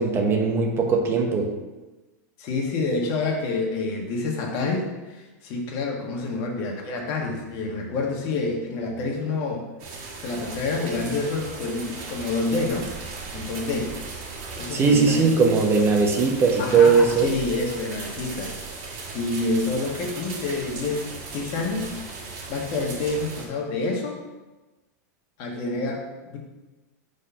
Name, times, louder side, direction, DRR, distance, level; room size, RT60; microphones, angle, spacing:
voice 1, 0.0-1.5 14.7-17.3, right 5 dB, 25° right, 2 dB, 1.0 m, -19 dB
voice 2, 2.4-9.6 10.2-12.9 13.3-13.9 14.5-15.3 16.6-18.5 19.1-21.9 22.5-24.2 25.4-26.4, left 3 dB, 45° left, 0 dB, 1.5 m, -28 dB
sound 1, 9.8-23.5, right 3 dB, 55° right, 2.0 m, -37 dB
5.3 x 4.1 x 5.6 m, 1.1 s
hypercardioid pair, 125°, 9 cm